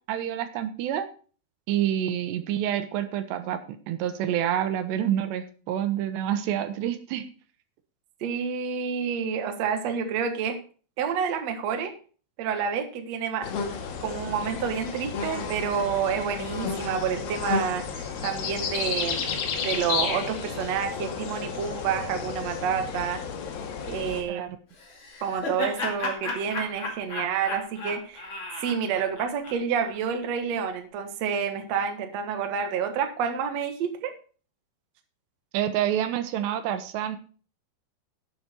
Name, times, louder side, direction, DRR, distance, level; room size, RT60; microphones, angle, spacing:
voice 1, 0.1-1.1 1.7-7.3 24.3-24.6 35.5-37.2, right 11 dB, 85° right, 9 dB, 3.2 m, -28 dB
voice 2, 8.2-10.6 11.0-11.9 12.4-13.5 14.0-23.2 23.8-24.5 25.2-28.3 28.6-34.1, right 7 dB, 60° right, 6 dB, 1.9 m, -29 dB
sound 1, 13.4-24.2, left 6 dB, 65° left, 3.2 m, -32 dB
Laughter, 24.8-30.0, left 3 dB, 35° left, 2.5 m, -34 dB
11.5 x 8.4 x 4.4 m, 0.40 s
omnidirectional pair, 4.9 m